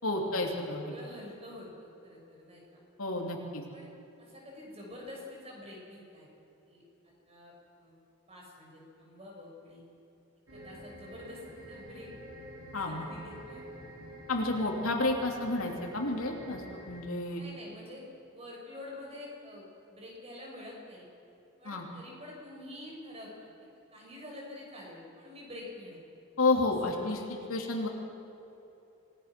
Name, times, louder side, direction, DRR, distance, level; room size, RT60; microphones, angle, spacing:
voice 1, 0.0-0.9 3.0-3.6 12.7-13.0 14.3-17.4 21.6-21.8 26.4-27.2 27.5-27.9, left 2 dB, 80° left, 1 dB, 3.1 m, -30 dB
voice 2, 0.8-2.8 3.7-3.9 4.2-6.3 6.7-6.8 7.3-8.0 8.3-9.8 10.5-12.1 12.8-13.8 17.3-18.0 18.3-21.1 21.6-23.5 23.9-26.0 26.8-27.2 27.7-27.9, left 1 dB, 30° right, -2 dB, 6.1 m, -47 dB
sound 1, 10.5-17.0, equal, 75° right, 3.9 m, -48 dB
26.5 x 18.5 x 6.1 m, 3.0 s
head